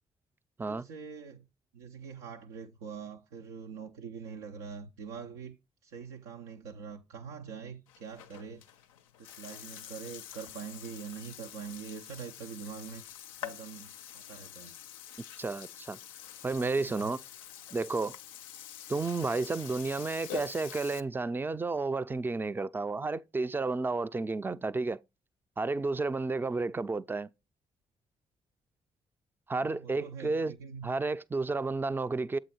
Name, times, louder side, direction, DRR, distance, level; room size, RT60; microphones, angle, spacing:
voice 1, 0.7-1.5 1.7-5.6 5.8-8.6 9.2-13.0 13.4-14.8 16.6-17.2 29.5-30.9, right 6 dB, 85° right, 0.5 m, -44 dB
Burping eructation, 7.9-21.0, left 11 dB, 85° left, 0.4 m, -46 dB
voice 2, 15.4-16.0 16.4-17.2 17.7-18.2 18.9-25.0 25.6-27.3 29.5-30.5 30.8-32.4, right 3 dB, 10° right, 0.4 m, -31 dB
7.6 x 4.0 x 4.2 m
hypercardioid pair, 40°, 17 cm